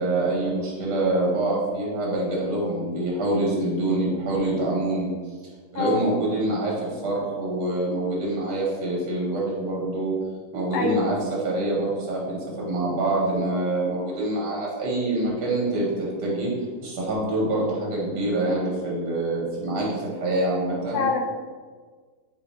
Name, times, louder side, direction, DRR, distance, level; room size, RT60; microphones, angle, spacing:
voice 1, 0.0-5.1 5.7-10.1 10.5-11.2 11.4-16.5 16.8-21.1, right 2 dB, 85° right, -4 dB, 1.5 m, -25 dB
voice 2, 10.7-11.1 20.9-21.2, left 5 dB, 75° left, 3 dB, 1.0 m, -25 dB
4.2 x 2.6 x 4.0 m, 1.5 s
omnidirectional pair, 1.7 m